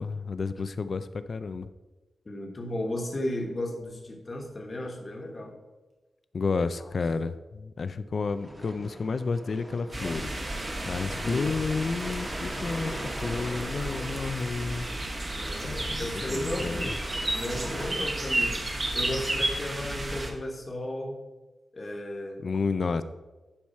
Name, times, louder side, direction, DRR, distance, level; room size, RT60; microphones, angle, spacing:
voice 1, 0.0-1.7 6.3-10.4 10.8-14.9 15.6-16.9 22.4-23.0, left 4 dB, 55° left, 12 dB, 0.4 m, -31 dB
voice 2, 2.2-5.6 6.8-6.9 11.2-11.8 15.4-17.0 17.3-18.6 18.9-21.2 21.7-22.5, left 1 dB, 35° left, 1 dB, 1.3 m, -34 dB
sound 1, 5.5-5.6 5.9-6.0 6.4-6.5 8.2-8.9 9.4-9.5 9.9-10.2 11.1-11.2 11.3-11.4, right 2 dB, 85° right, 2.1 m, -49 dB
sound 2, 8.3-17.9, equal, 15° right, 1.3 m, -41 dB
sound 3, 9.9-20.3, right 1 dB, 30° right, 1.2 m, -32 dB
10.5 x 4.8 x 4.2 m, 1.2 s
wide cardioid pair, 100°, 0 cm